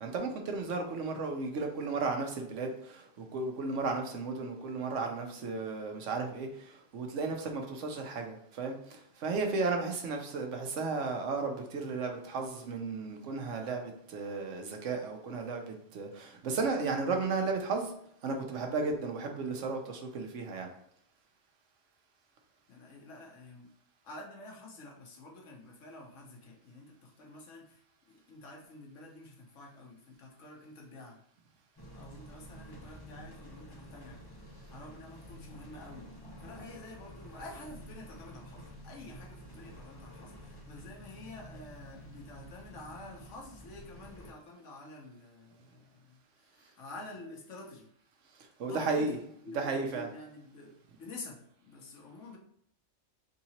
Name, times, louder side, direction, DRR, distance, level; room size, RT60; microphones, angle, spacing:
voice 1, 0.0-17.9 18.2-20.7 48.6-49.2 49.5-50.1, right 4 dB, 90° right, 3 dB, 1.1 m, -34 dB
voice 2, 22.7-23.7 24.0-27.8 28.1-31.2 32.0-34.3 34.7-36.1 36.4-46.2 46.5-47.9 48.6-52.4, left 2 dB, 90° left, 0 dB, 1.3 m, -49 dB
sound 1, 31.8-44.3, equal, 25° left, 0.7 m, -50 dB
3.6 x 2.8 x 4.2 m, 0.68 s
omnidirectional pair, 1.2 m